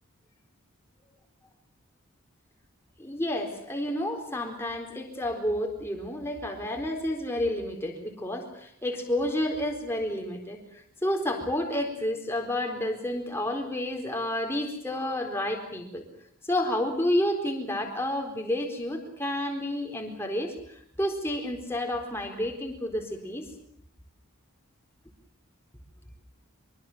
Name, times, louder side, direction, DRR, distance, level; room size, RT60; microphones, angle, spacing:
voice 1, 3.0-16.0 16.4-23.5, left 1 dB, 10° left, 2 dB, 4.2 m, -30 dB
24.5 x 23.5 x 7.5 m, 0.69 s
head